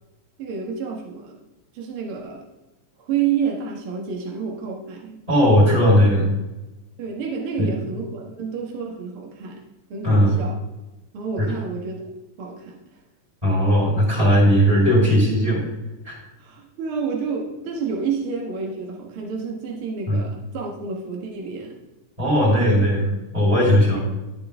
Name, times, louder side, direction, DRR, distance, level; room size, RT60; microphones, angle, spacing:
voice 1, 0.4-1.4 1.7-2.4 3.1-5.2 7.0-9.6 9.9-10.6 11.1-12.8 16.4-21.8 23.9-24.0, right 6 dB, 50° right, 0 dB, 1.9 m, -29 dB
voice 2, 5.3-6.3 7.6-7.7 10.0-10.4 11.4-11.5 13.4-15.6 16.0-16.2 20.1-20.2 22.2-24.0, equal, 10° right, -4 dB, 4.1 m, -17 dB
12.0 x 8.8 x 3.6 m, 1.0 s
omnidirectional pair, 3.9 m